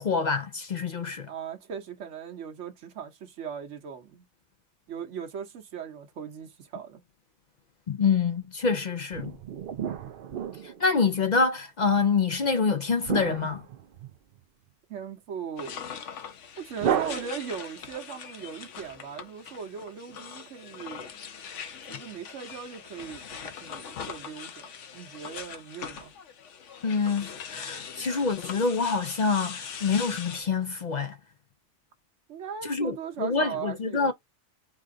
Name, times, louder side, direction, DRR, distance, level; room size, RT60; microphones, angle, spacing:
voice 1, 0.0-1.3 7.9-9.3 10.6-13.6 26.8-31.2 32.7-34.1, left 5 dB, 50° left, 0.6 m, -26 dB
voice 2, 1.3-4.2 4.9-7.0 14.9-15.9 16.6-21.1 21.9-26.1 32.3-34.1, right 7 dB, 90° right, 1.2 m, -39 dB
sound 1, 9.1-11.2 13.1-14.4 16.8-17.8, right 9 dB, 60° right, 0.7 m, -32 dB
sound 2, 15.6-30.4, left 7 dB, 90° left, 1.1 m, -41 dB
4.9 x 2.4 x 3.7 m
omnidirectional pair, 1.2 m